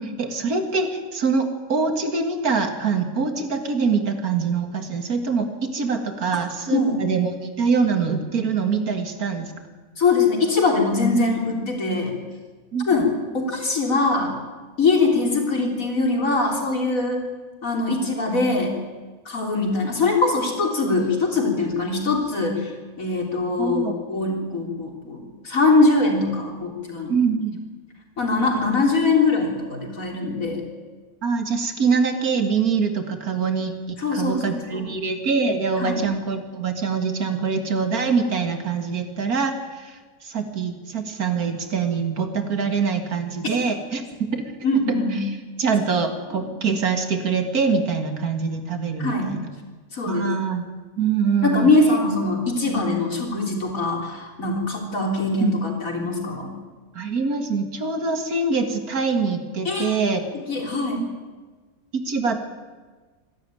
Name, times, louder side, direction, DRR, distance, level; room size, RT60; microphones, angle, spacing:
voice 1, 0.0-9.5 12.7-12.9 23.6-24.0 27.1-27.6 31.2-44.4 45.1-45.3 45.6-49.5 50.1-50.6 51.0-51.7 55.4-55.6 56.9-60.2 61.9-62.4, right 5 dB, 85° right, 6 dB, 2.4 m, -24 dB
voice 2, 6.7-7.0 10.0-12.2 12.9-13.1 13.3-14.4 14.8-17.2 17.6-18.7 19.3-22.7 23.0-27.2 28.2-30.6 34.0-34.9 35.8-36.0 44.6-45.2 46.3-46.5 49.0-49.3 49.9-50.3 51.4-56.5 59.7-60.2 60.5-61.0, left 3 dB, 65° left, 1 dB, 3.9 m, -22 dB
25.5 x 12.0 x 9.2 m, 1.4 s
omnidirectional pair, 1.5 m